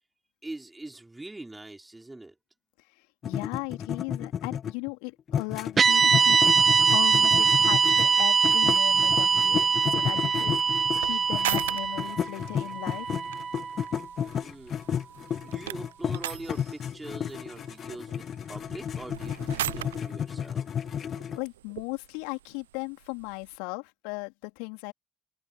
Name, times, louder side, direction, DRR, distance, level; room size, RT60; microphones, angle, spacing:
voice 1, 0.4-2.3 14.4-14.8 15.4-20.9, right 2 dB, 15° right, 5.5 m, -43 dB
voice 2, 3.0-6.4 6.9-9.7 9.9-10.5 11.0-13.2 21.4-24.9, left 35 dB, 70° left, 3.6 m, -37 dB
sound 1, 3.2-4.9 5.3-11.7 11.9-21.4, left 8 dB, 50° left, 1.4 m, -32 dB
sound 2, 5.8-14.1, right 5 dB, 40° right, 0.3 m, -23 dB
sound 3, 8.0-23.6, right 13 dB, 80° right, 0.6 m, -41 dB
open air
figure-of-eight pair, 45°, 0 cm